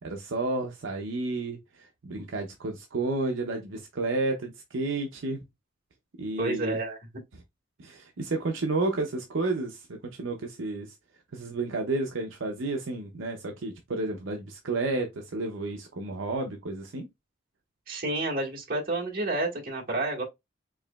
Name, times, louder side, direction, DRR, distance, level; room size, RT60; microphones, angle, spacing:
voice 1, 0.0-5.4 6.2-6.8 7.3-7.4 7.8-10.9 11.3-17.1, right 2 dB, 75° right, 0.6 m, -31 dB
voice 2, 6.4-7.0 17.9-20.2, right 2 dB, 50° right, 1.5 m, -29 dB
4.7 x 2.9 x 2.3 m
head